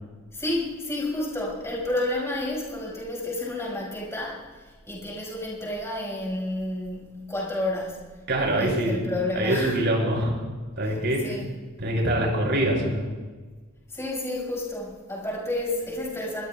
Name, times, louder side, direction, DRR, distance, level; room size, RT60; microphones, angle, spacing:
voice 1, 0.3-8.0 8.6-9.8 10.8-11.5 13.9-16.5, left 1 dB, 15° left, -4 dB, 5.4 m, -30 dB
voice 2, 8.3-9.1 9.4-10.4 10.8-11.3 11.8-13.0, right 1 dB, 55° right, -1 dB, 6.2 m, -24 dB
22.5 x 21.5 x 2.3 m, 1.4 s
head